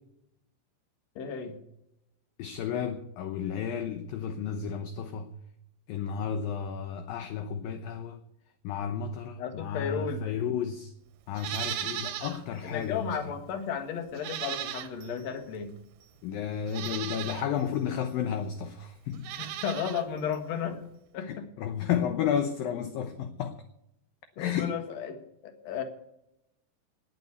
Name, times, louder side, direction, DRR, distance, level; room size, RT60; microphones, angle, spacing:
voice 1, 1.2-1.6 9.4-10.4 12.6-15.7 19.4-20.8 21.1-21.5 24.4-25.8, left 7 dB, 50° left, 2.2 m, -34 dB
voice 2, 2.4-5.3 5.9-8.2 8.6-10.9 11.3-13.2 16.2-19.3 21.3-23.6 24.4-24.7, left 8 dB, 75° left, 2.2 m, -32 dB
Livestock farm animals working animals, 11.3-12.4 12.8-12.9 14.1-15.2 16.0-16.1 16.7-17.5 19.1-20.0 20.3-20.4, right 12 dB, 70° right, 2.7 m, -36 dB
20.0 x 6.7 x 8.4 m
omnidirectional pair, 5.1 m